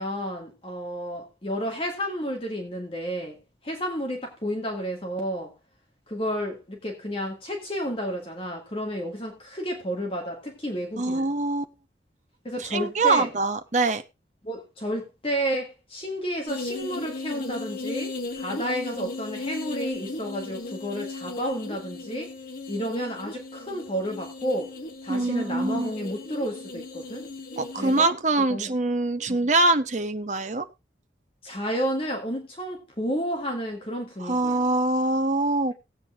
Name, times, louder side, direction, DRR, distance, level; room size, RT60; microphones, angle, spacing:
voice 1, 0.0-3.4 3.6-5.5 6.1-11.3 12.4-13.3 14.4-22.3 22.7-24.7 25.0-27.2 27.8-28.1 28.5-28.7 29.3-29.4 31.4-34.6, equal, 30° left, 1.9 m, -31 dB
voice 2, 11.0-11.6 12.6-14.0 25.1-25.9 27.6-30.7 34.2-35.7, right 2 dB, 40° right, 0.9 m, -24 dB
sound 1, 16.5-28.0, left 3 dB, 50° left, 1.2 m, -36 dB
18.5 x 8.4 x 2.4 m
head